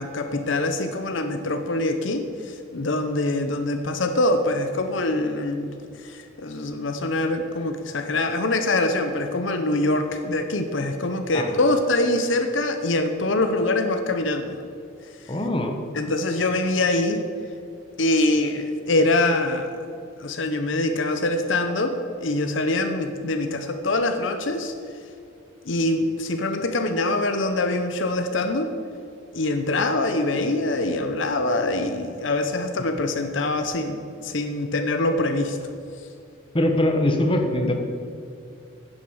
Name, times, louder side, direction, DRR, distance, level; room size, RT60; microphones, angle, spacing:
voice 1, 0.0-5.7 6.0-14.5 15.9-17.2 18.0-19.7 20.2-24.7 25.7-28.7 29.3-35.6, left 2 dB, 65° left, 7 dB, 0.8 m, -24 dB
voice 2, 15.3-15.7 36.5-37.7, left 1 dB, 25° left, 4 dB, 1.1 m, -22 dB
10.0 x 8.1 x 7.2 m, 2.4 s
head